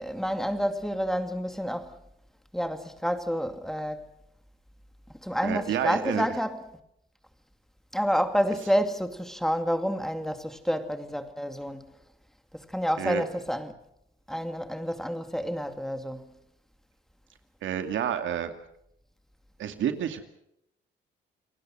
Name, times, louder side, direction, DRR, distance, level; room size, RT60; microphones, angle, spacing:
voice 1, 0.0-2.0 2.5-4.1 5.1-6.6 7.9-11.8 12.5-13.7 14.3-16.2, equal, ahead, 2.6 m, -29 dB
voice 2, 5.4-6.3 13.0-13.2 17.6-18.5 19.6-20.2, right 9 dB, 75° right, 2.5 m, -29 dB
28.5 x 19.5 x 6.3 m
cardioid pair, 90°, 20 cm